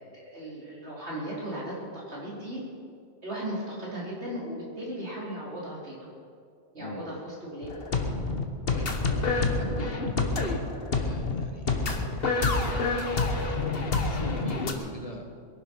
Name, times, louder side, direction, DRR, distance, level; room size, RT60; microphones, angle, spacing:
voice 1, 0.0-2.6 3.2-6.0 6.7-7.9, right 1 dB, 75° right, -6 dB, 4.8 m, -37 dB
sound 1, 7.6-14.7, left 3 dB, 60° left, 1.5 m, -28 dB
voice 2, 8.7-15.3, left 1 dB, 35° left, 2 dB, 1.8 m, -41 dB
21.5 x 11.5 x 5.6 m, 2.3 s
omnidirectional pair, 1.1 m